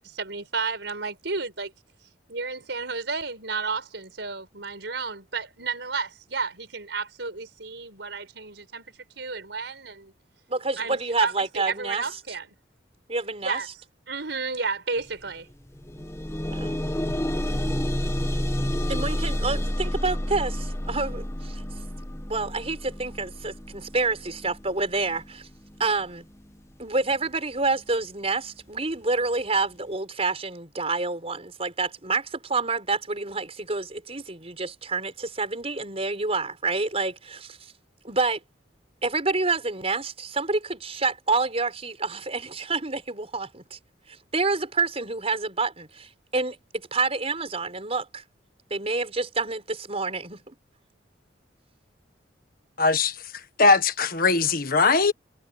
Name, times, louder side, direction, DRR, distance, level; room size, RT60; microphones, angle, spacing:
voice 1, 0.0-1.7 2.3-8.9 9.2-10.1 10.8-12.5 13.4-13.7 14.1-15.5, right 4 dB, 75° right, 4.9 m, -32 dB
voice 2, 10.5-12.0 13.1-13.6 16.5-16.7 18.9-21.6 22.3-25.5 25.8-26.3 26.8-37.6 38.0-38.4 39.0-43.8 44.1-48.2 48.7-50.4, right 3 dB, 35° right, 5.3 m, -28 dB
sound 1, 15.0-15.2 15.5-26.5 27.3-27.4 27.9-28.0, equal, 15° left, 1.4 m, -30 dB
voice 3, 52.8-53.2 53.6-55.1, left 4 dB, 50° left, 1.6 m, -20 dB
head